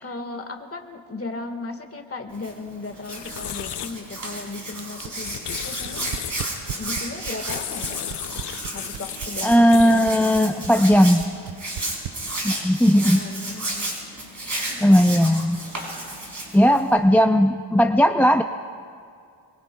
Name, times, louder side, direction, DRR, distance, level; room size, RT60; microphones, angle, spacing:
voice 1, 0.0-6.1 6.8-8.2 8.7-10.7 12.9-13.9 14.7-14.9, left 3 dB, 30° left, 5 dB, 1.6 m, -36 dB
Hands, 2.3-17.0, right 1 dB, 40° right, 4.9 m, -33 dB
sound 1, 2.9-10.4, left 10 dB, 60° left, 0.6 m, -36 dB
sound 2, 4.7-12.7, right 10 dB, 90° right, 0.7 m, -35 dB
voice 2, 9.4-11.2 12.4-13.2 14.4-15.6 16.5-18.4, equal, 5° left, 5 dB, 0.4 m, -17 dB
25.5 x 23.5 x 2.3 m, 2.3 s
cardioid pair, 80°, 45 cm